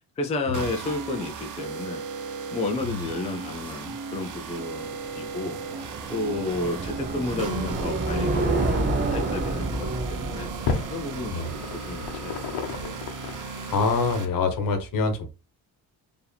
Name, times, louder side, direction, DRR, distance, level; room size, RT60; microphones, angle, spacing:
voice 1, 0.2-2.0 2.5-10.5 10.9-13.0, left 2 dB, 15° left, 0.4 m, -32 dB
sound 1, 0.5-14.2, right 5 dB, 50° right, 0.9 m, -36 dB
sound 2, 4.8-12.2, right 2 dB, 25° right, 0.6 m, -29 dB
sound 3, 7.4-14.4, left 5 dB, 80° left, 0.9 m, -36 dB
voice 2, 13.7-15.3, left 4 dB, 55° left, 1.1 m, -25 dB
4.5 x 2.8 x 3.3 m
cardioid pair, 170°, 39 cm